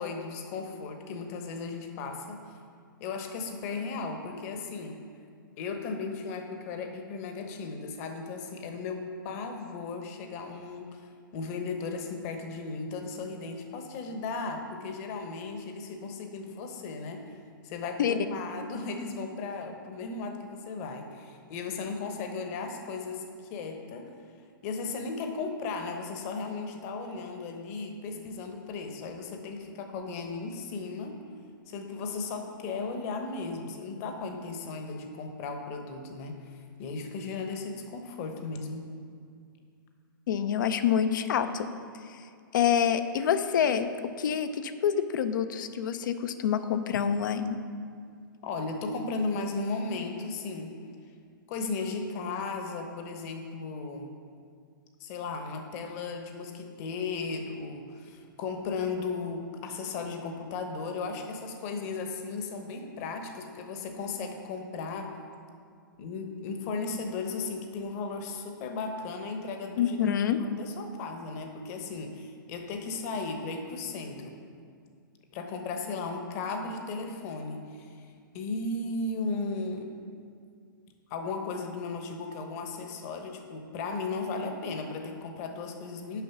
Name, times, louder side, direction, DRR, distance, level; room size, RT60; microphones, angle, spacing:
voice 1, 0.0-2.4 3.0-5.0 5.6-11.0 11.3-17.2 17.6-23.2 23.5-24.1 24.6-31.2 31.7-38.9 48.4-50.7 51.5-54.1 55.0-65.1 66.0-74.4 75.3-78.0 78.3-79.9 81.1-86.2, left 4 dB, 45° left, 5 dB, 1.0 m, -36 dB
voice 2, 40.3-41.7 42.5-43.9 44.2-47.6 69.8-70.4, left 8 dB, 60° left, 10 dB, 0.6 m, -26 dB
7.0 x 5.4 x 6.0 m, 2.2 s
hypercardioid pair, 125°, 12 cm